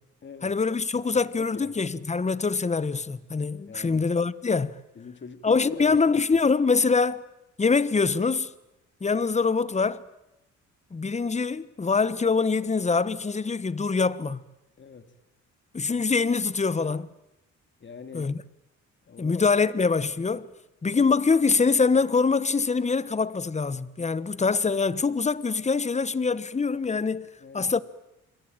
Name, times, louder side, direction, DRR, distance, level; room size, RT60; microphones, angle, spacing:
voice 1, 0.4-4.8 5.4-7.2 7.6-8.5 9.0-10.0 10.9-14.4 15.7-17.1 18.1-18.4 19.2-20.5 20.8-27.3 27.5-27.8, left 4 dB, 20° left, 1.2 m, -24 dB
voice 2, 1.4-1.7 3.7-4.0 5.0-6.0 14.8-15.1 17.8-18.3 19.1-19.6 27.4-27.7, left 5 dB, 40° left, 2.6 m, -42 dB
28.5 x 22.5 x 9.0 m
cardioid pair, 90°, 30 cm